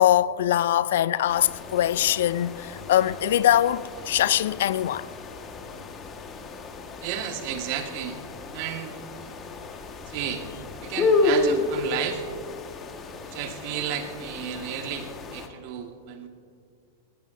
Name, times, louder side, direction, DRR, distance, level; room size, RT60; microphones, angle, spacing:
voice 1, 0.0-5.1, left 12 dB, 65° left, 0.4 m, -22 dB
sound 1, 1.3-15.5, left 3 dB, 30° left, 1.5 m, -31 dB
voice 2, 7.0-8.2 8.5-9.0 10.1-10.4 10.8-12.2 13.2-16.3, right 9 dB, 55° right, 1.6 m, -33 dB
20.0 x 18.5 x 2.7 m
hypercardioid pair, 100°, 0 cm